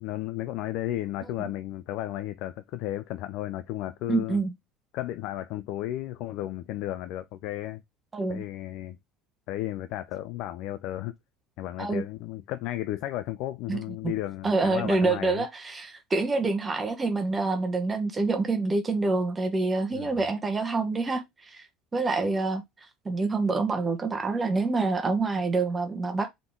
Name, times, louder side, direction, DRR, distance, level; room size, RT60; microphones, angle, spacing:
voice 1, 0.0-4.4 4.9-7.8 8.3-9.0 9.5-11.1 11.6-15.5 19.9-20.3, left 14 dB, 65° left, 0.4 m, -34 dB
voice 2, 4.1-4.5 8.1-8.4 11.8-12.0 13.7-14.1 14.4-21.6 21.9-22.6 23.0-26.3, right 3 dB, 25° right, 1.0 m, -27 dB
3.8 x 3.7 x 3.6 m
hypercardioid pair, 85°, 0 cm